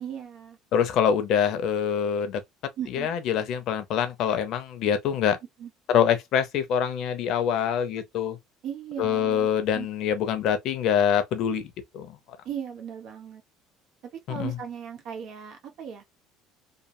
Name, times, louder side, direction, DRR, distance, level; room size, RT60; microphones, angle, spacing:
voice 1, 0.0-0.6 2.8-3.1 5.6-5.7 8.6-9.5 9.7-9.9 12.4-13.4 14.3-16.0, right 8 dB, 60° right, 0.8 m, -37 dB
voice 2, 0.7-2.4 2.9-5.4 5.9-8.4 9.0-12.1 14.3-14.6, left 8 dB, 55° left, 0.7 m, -25 dB
3.1 x 2.0 x 2.6 m
cardioid pair, 135°, 0 cm